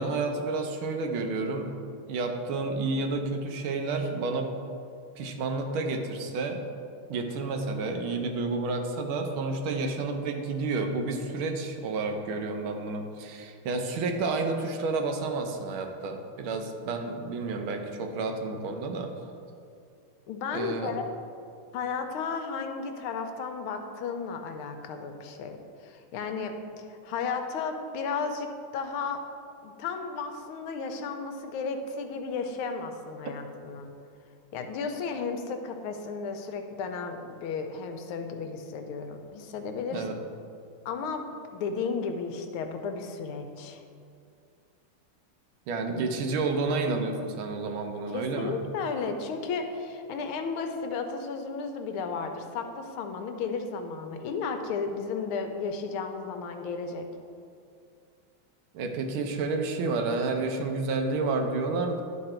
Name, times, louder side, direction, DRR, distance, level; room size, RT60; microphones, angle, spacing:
voice 1, 0.0-1.7 2.1-4.5 5.2-6.6 7.1-19.1 20.5-20.9 39.9-40.1 45.7-48.6 58.7-62.0, right 3 dB, 75° right, 4 dB, 1.5 m, -30 dB
voice 2, 20.3-21.0 21.7-25.6 25.8-29.2 29.6-33.9 34.5-40.1 40.8-43.8 48.1-57.1, left 5 dB, 85° left, 6 dB, 1.5 m, -34 dB
11.0 x 3.9 x 4.3 m, 2.4 s
omnidirectional pair, 2.3 m